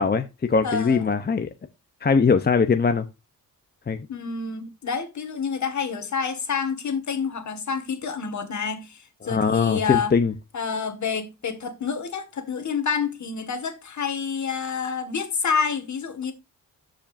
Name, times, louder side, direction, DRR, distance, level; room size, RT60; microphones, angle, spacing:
voice 1, 0.0-1.5 2.0-3.1 3.9-4.1 9.2-10.3, left 5 dB, 30° left, 0.7 m, -21 dB
voice 2, 0.6-1.1 4.1-10.1 10.5-16.3, left 6 dB, 55° left, 1.8 m, -28 dB
14.0 x 5.1 x 2.5 m
cardioid pair, 105°, 35 cm